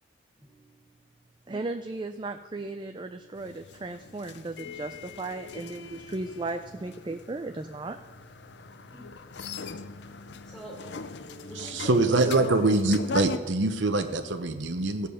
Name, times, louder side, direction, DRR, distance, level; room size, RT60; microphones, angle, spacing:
voice 1, 0.4-0.9 1.5-1.7 2.5-2.7 4.6-4.8 6.8-7.5 8.9-9.6 10.0-10.8 11.2-12.6, right 1 dB, 5° left, -3 dB, 2.3 m, -49 dB
voice 2, 1.5-8.0, right 2 dB, 25° right, 7 dB, 0.4 m, -36 dB
sound 1, 3.4-13.4, left 4 dB, 60° left, 0.5 m, -40 dB
voice 3, 11.5-15.1, right 2 dB, 70° right, 6 dB, 0.9 m, -24 dB
15.0 x 5.5 x 6.5 m, 1.2 s
head